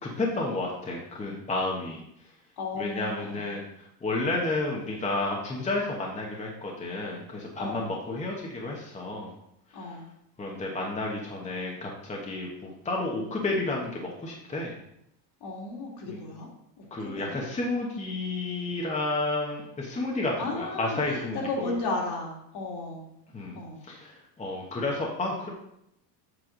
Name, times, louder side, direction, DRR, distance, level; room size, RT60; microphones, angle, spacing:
voice 1, 0.0-2.0 2.8-9.3 10.4-14.7 16.1-16.2 16.9-21.7 23.3-23.6 23.8-25.5, left 2 dB, 15° left, -1 dB, 1.1 m, -31 dB
voice 2, 2.6-3.5 7.6-7.9 9.7-10.1 15.4-16.5 16.8-17.3 20.4-23.1 23.5-23.8, left 3 dB, 50° left, -1 dB, 2.4 m, -34 dB
8.0 x 5.6 x 3.8 m, 0.78 s
supercardioid pair, 115°, 48 cm